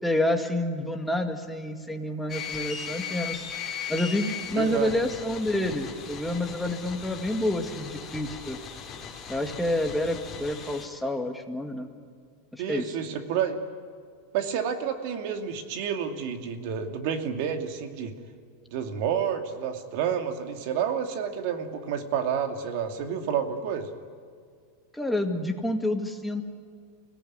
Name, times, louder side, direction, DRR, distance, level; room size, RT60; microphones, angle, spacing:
voice 1, 0.0-3.4 3.9-8.6 9.3-11.9 12.5-12.9 24.9-26.4, left 1 dB, 5° left, 3 dB, 2.1 m, -28 dB
sound 1, 2.3-10.9, left 7 dB, 25° left, 3.8 m, -38 dB
voice 2, 4.5-4.9 12.6-13.6 14.3-18.1 18.7-23.9, right 8 dB, 60° right, 5 dB, 2.6 m, -29 dB
25.5 x 17.5 x 9.7 m, 2.1 s
supercardioid pair, 135°, 0 cm